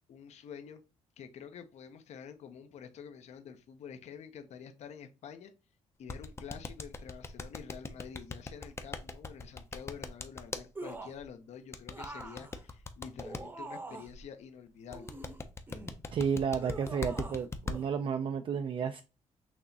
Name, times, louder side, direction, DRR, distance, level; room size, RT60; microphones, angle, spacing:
voice 1, 0.1-0.8 1.2-5.5 6.0-15.1, left 7 dB, 60° left, 0.6 m, -48 dB
sound 1, 6.1-10.6 11.7-13.4 14.9-17.8, left 3 dB, 20° left, 0.5 m, -39 dB
sound 2, 10.8-11.3 11.9-14.2 14.9-16.0 16.6-17.5 17.7-17.9, right 2 dB, 15° right, 0.7 m, -45 dB
voice 2, 16.1-19.0, right 6 dB, 45° right, 0.3 m, -32 dB
6.0 x 2.8 x 2.7 m
cardioid pair, 115°, 13 cm